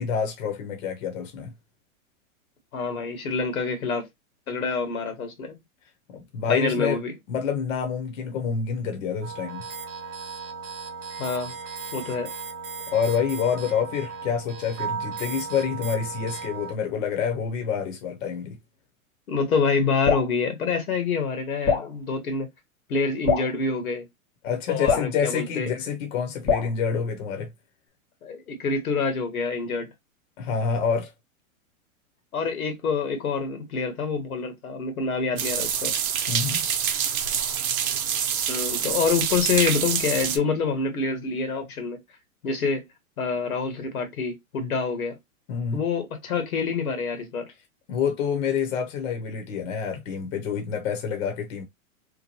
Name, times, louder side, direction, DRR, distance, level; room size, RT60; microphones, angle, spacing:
voice 1, 0.0-1.5 6.1-7.0 7.3-9.6 12.9-18.5 24.4-27.5 30.4-31.1 36.3-36.6 45.5-45.8 47.9-51.6, left 6 dB, 60° left, 0.9 m, -27 dB
voice 2, 2.7-4.1 4.5-5.6 6.5-7.1 11.2-11.5 11.9-12.3 19.3-22.5 22.9-24.0 24.7-25.7 28.2-29.9 32.3-35.9 38.5-42.0 42.4-42.8 43.2-45.2 45.7-47.4, left 4 dB, 90° left, 1.3 m, -26 dB
sound 1, 9.2-16.7, right 5 dB, 30° right, 0.6 m, -36 dB
Drip, 20.0-20.3 21.7-21.9 23.3-23.5 24.9-25.1 26.5-26.7, left 6 dB, 15° left, 0.6 m, -23 dB
sound 2, 35.4-40.4, right 8 dB, 80° right, 0.7 m, -26 dB
3.0 x 2.1 x 2.9 m
hypercardioid pair, 125°, 42 cm